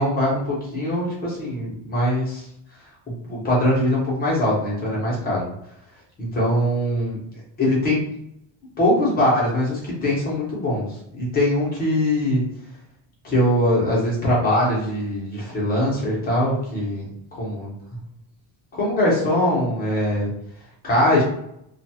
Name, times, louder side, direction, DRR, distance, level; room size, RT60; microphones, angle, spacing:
voice 1, 0.0-2.4 3.3-5.4 6.2-7.2 7.6-8.0 8.8-10.9 11.1-12.4 13.2-17.1 17.4-17.7 18.7-20.3 20.8-21.2, left 1 dB, 20° left, -5 dB, 0.9 m, -22 dB
2.4 x 2.3 x 2.8 m, 0.78 s
cardioid pair, 170°, 45 cm